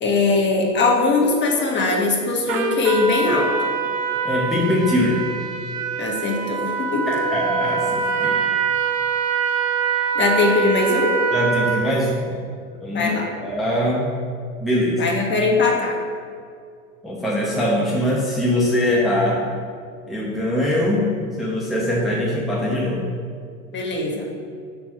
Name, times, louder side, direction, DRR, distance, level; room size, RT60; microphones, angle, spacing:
voice 1, 0.0-3.5 6.0-7.2 10.1-11.2 12.9-13.3 15.0-16.0 23.7-24.3, left 3 dB, 25° left, -1 dB, 1.4 m, -20 dB
Trumpet, 2.5-12.0, right 5 dB, 65° right, 0.9 m, -24 dB
voice 2, 4.2-5.2 7.1-8.4 11.3-12.4 12.8-13.1 13.4-14.1 14.6-15.0 17.0-19.4 20.1-21.1 21.4-23.1, left 1 dB, ahead, -5 dB, 0.9 m, -22 dB
6.0 x 4.1 x 6.0 m, 2.2 s
hypercardioid pair, 110°, 41 cm